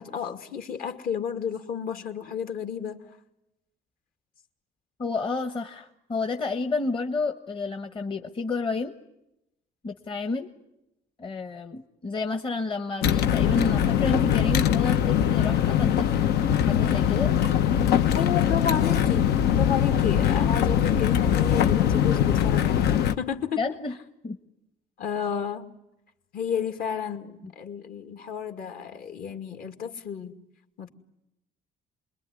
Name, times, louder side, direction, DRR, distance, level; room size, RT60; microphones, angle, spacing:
voice 1, 0.0-3.0 18.1-23.6 25.0-25.7 26.3-30.4 30.8-30.9, left 7 dB, 60° left, 6 dB, 2.4 m, -32 dB
voice 2, 5.0-8.9 9.8-10.5 11.2-16.1 16.7-17.3 23.6-24.0 24.2-24.4, left 3 dB, 30° left, 6 dB, 1.3 m, -30 dB
sound 1, 13.0-23.2, left 9 dB, 75° left, 1.0 m, -22 dB
27.5 x 21.5 x 9.9 m, 0.89 s
cardioid pair, 110°, 17 cm